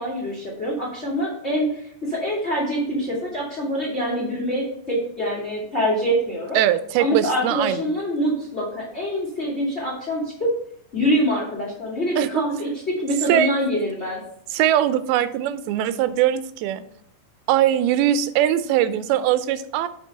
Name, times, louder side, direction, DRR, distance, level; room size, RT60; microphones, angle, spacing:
voice 1, 0.0-6.6 7.0-10.5 10.9-14.2, equal, 25° left, -3 dB, 1.5 m, -25 dB
voice 2, 6.5-7.8 12.2-12.4 13.3-13.5 14.5-16.8 17.5-19.9, right 11 dB, 90° right, 13 dB, 2.5 m, -21 dB
7.3 x 4.5 x 5.4 m, 0.68 s
omnidirectional pair, 4.3 m